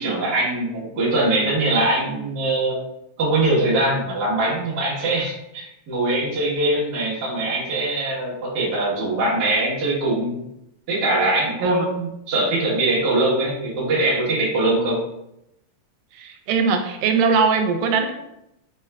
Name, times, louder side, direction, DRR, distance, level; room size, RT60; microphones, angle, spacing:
voice 1, 0.0-2.8 3.2-10.4 10.9-15.0, right 2 dB, 55° right, -6 dB, 1.2 m, -22 dB
voice 2, 16.1-18.1, right 5 dB, 85° right, 5 dB, 2.2 m, -20 dB
5.3 x 2.3 x 3.3 m, 0.84 s
omnidirectional pair, 3.8 m